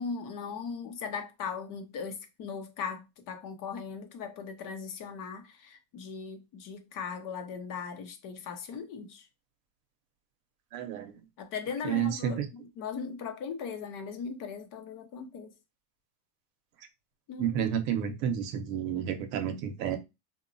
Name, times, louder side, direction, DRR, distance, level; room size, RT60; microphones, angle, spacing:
voice 1, 0.0-9.3 11.4-15.5 17.3-17.6, left 6 dB, 45° left, 0.6 m, -38 dB
voice 2, 10.7-11.1 11.8-12.5 17.4-20.0, right 9 dB, 75° right, 0.8 m, -30 dB
2.8 x 2.2 x 2.5 m
supercardioid pair, 120°, 47 cm